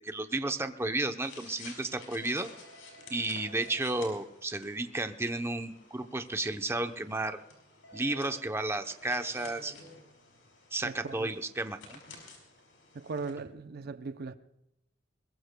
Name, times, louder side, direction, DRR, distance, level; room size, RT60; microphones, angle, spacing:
voice 1, 0.0-2.5 3.1-7.4 7.9-9.8 10.7-12.0, right 2 dB, 15° right, 0.7 m, -33 dB
sound 1, 1.2-13.3, left 3 dB, 80° left, 5.3 m, -52 dB
voice 2, 10.8-11.3 12.9-14.4, right 4 dB, 55° right, 0.6 m, -38 dB
21.5 x 21.5 x 2.2 m
head